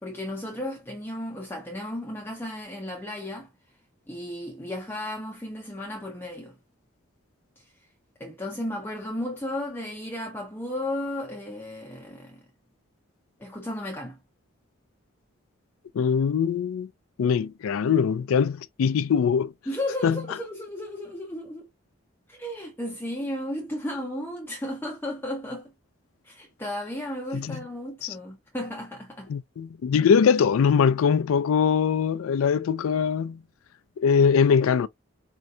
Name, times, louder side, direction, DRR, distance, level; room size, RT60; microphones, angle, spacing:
voice 1, 0.0-3.5 4.1-6.5 7.6-7.7 8.2-12.4 13.4-14.2 19.7-21.7 22.3-25.7 26.2-29.3, left 1 dB, 10° left, 0.5 m, -34 dB
voice 2, 15.9-16.9 17.2-19.5 20.0-20.2 27.3-27.6 28.0-28.1 29.3-33.4 34.0-34.9, left 6 dB, 80° left, 0.3 m, -22 dB
4.4 x 2.7 x 2.2 m
head